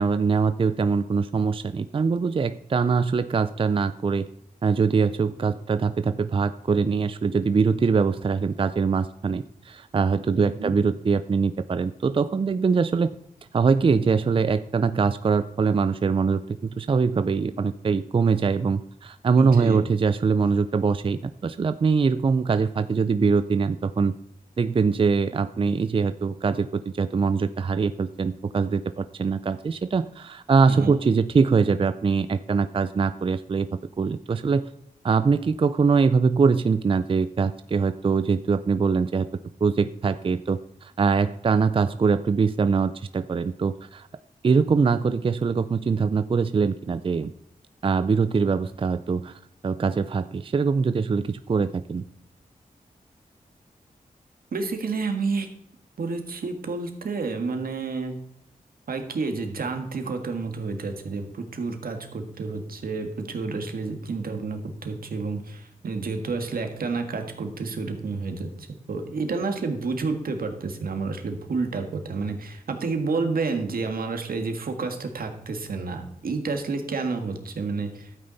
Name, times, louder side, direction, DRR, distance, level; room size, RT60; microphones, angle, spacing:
voice 1, 0.0-4.3 4.6-13.1 13.5-24.1 24.6-34.7 35.0-39.3 39.6-44.1 44.4-47.3 47.8-52.1, right 5 dB, 35° right, 13 dB, 0.4 m, -23 dB
voice 2, 10.4-10.7 19.4-19.9 30.7-30.9 54.5-55.5 56.0-58.2 58.9-78.1, right 4 dB, 80° right, 6 dB, 1.7 m, -30 dB
12.5 x 8.8 x 4.0 m, 0.74 s
wide cardioid pair, 95°, 15 cm